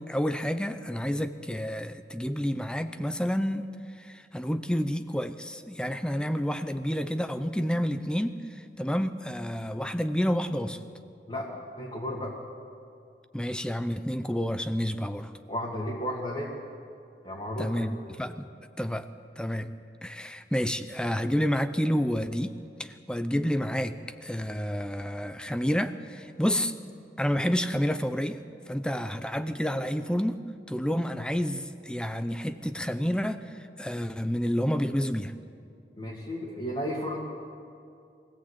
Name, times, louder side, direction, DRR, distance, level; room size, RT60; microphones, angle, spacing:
voice 1, 0.0-3.7 4.0-10.8 13.3-15.3 17.6-18.5 18.8-19.1 19.4-19.7 20.0-26.7 27.2-28.4 28.7-30.4 30.7-35.3, equal, 5° left, 10 dB, 0.6 m, -29 dB
voice 2, 11.3-12.4 15.5-16.5 17.2-17.9 36.0-37.2, equal, 30° left, -5 dB, 2.2 m, -33 dB
23.5 x 16.5 x 8.2 m, 2.4 s
head